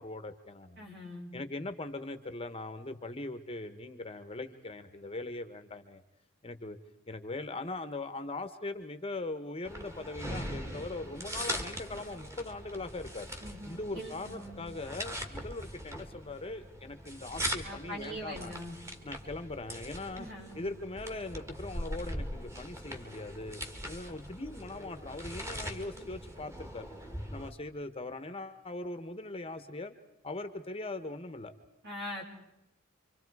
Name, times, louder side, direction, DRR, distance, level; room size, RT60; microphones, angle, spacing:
voice 1, 0.0-0.9 1.3-6.0 6.4-6.8 7.1-13.3 13.7-18.5 19.0-20.3 20.5-26.9 27.3-29.9 30.2-31.5, left 2 dB, 25° left, 9 dB, 1.1 m, -40 dB
voice 2, 0.8-1.3 13.4-14.6 17.6-18.8 20.2-20.6 31.8-32.2, equal, 55° right, 0 dB, 5.7 m, -42 dB
sound 1, 9.6-27.5, equal, 15° right, 1.9 m, -41 dB
28.0 x 24.5 x 4.8 m, 0.85 s
head